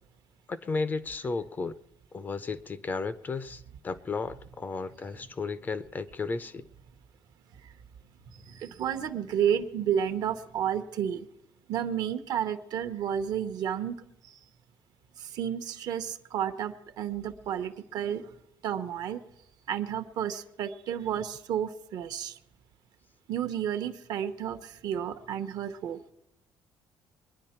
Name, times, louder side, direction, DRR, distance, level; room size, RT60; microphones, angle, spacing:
voice 1, 0.5-1.8 2.1-6.7, left 4 dB, 25° left, 15 dB, 0.5 m, -34 dB
voice 2, 8.3-11.3 11.7-14.0 14.2-14.4 15.2-18.3 18.6-19.2 19.7-22.4 23.3-26.0, right 9 dB, 55° right, 9 dB, 0.9 m, -31 dB
23.0 x 10.5 x 4.4 m, 0.85 s
cardioid pair, 160°, 8 cm